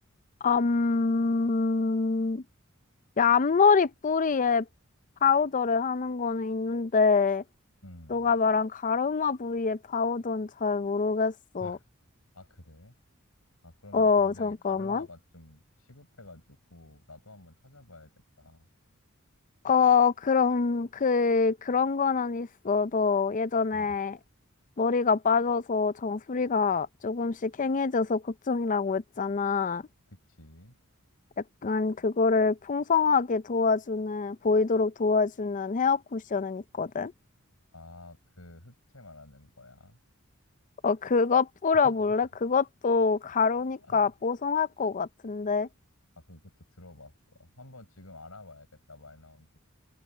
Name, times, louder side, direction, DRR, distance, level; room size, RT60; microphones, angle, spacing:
voice 1, 0.4-2.4 3.2-4.7 5.2-7.4 8.1-11.8 13.9-15.1 19.6-24.2 24.8-29.8 31.6-37.1 40.8-45.7, left 5 dB, 35° left, 0.5 m, -25 dB
voice 2, 7.8-8.3 11.6-11.8 12.3-13.0 13.6-18.7 23.7-24.0 30.1-30.8 37.7-40.0 41.7-41.9 43.8-44.1 46.2-49.6, left 2 dB, 90° left, 6.4 m, -50 dB
head